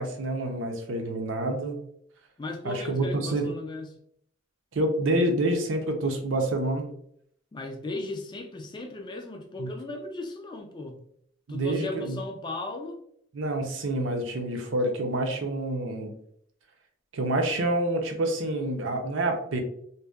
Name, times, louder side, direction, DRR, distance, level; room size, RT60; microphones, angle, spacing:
voice 1, 0.0-1.7 2.6-3.5 4.7-6.9 9.6-9.7 11.5-12.2 13.3-16.1 17.1-19.6, right 1 dB, 70° right, 4 dB, 0.5 m, -27 dB
voice 2, 2.4-4.0 7.5-11.0 11.5-13.0, left 2 dB, 20° left, 3 dB, 0.3 m, -36 dB
2.6 x 2.1 x 2.2 m, 0.68 s
head